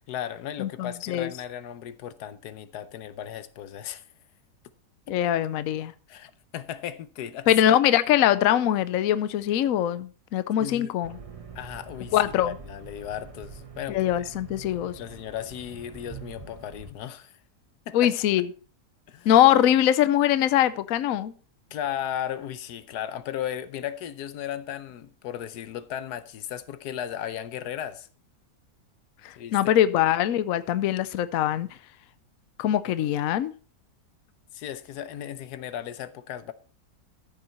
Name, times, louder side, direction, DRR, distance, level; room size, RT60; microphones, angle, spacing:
voice 1, 0.1-4.0 5.1-5.2 6.1-7.5 10.6-11.0 11.5-14.3 15.0-17.4 17.9-18.1 19.1-19.3 21.7-28.1 29.4-29.7 34.5-36.5, left 10 dB, 85° left, 1.3 m, -36 dB
voice 2, 0.6-1.3 5.1-5.9 7.5-11.2 12.1-12.5 13.9-14.9 17.9-18.5 19.3-21.3 29.2-31.7 32.6-33.5, left 11 dB, 70° left, 1.0 m, -22 dB
sound 1, 11.0-16.9, right 5 dB, 25° right, 1.0 m, -45 dB
13.5 x 6.7 x 4.4 m
omnidirectional pair, 1.7 m